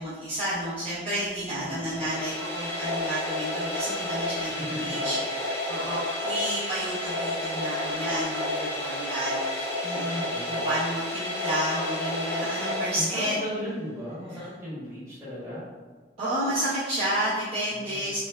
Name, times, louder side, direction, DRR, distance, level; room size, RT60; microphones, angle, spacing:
voice 1, 0.0-13.4 16.2-18.2, right 1 dB, 35° right, -12 dB, 0.6 m, -31 dB
sound 1, 1.7-13.6, left 1 dB, 15° left, 0.4 m, -31 dB
voice 2, 4.5-4.9 10.2-10.6 12.9-15.6 17.7-18.2, equal, 15° right, -10 dB, 1.0 m, -36 dB
3.1 x 2.0 x 2.2 m, 1.4 s
head